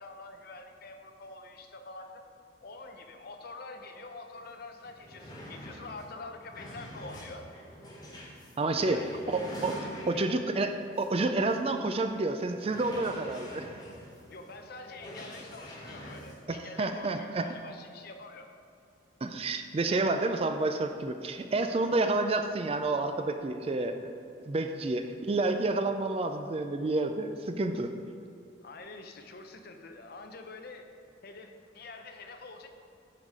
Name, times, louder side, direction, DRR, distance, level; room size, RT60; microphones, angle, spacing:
voice 1, 0.0-2.2 2.6-7.5 8.9-9.2 10.0-10.2 14.3-18.5 28.6-30.9 31.2-32.7, left 3 dB, 50° left, 5 dB, 0.6 m, -46 dB
sound 1, 4.4-4.5 4.8-10.5 11.0-11.1 11.5-11.6 12.5-16.4, equal, 20° left, 1.2 m, -45 dB
voice 2, 8.6-13.7 16.5-17.4 19.2-24.0 24.5-27.9, right 2 dB, 30° right, 7 dB, 0.4 m, -29 dB
11.0 x 4.1 x 4.9 m, 2.5 s
head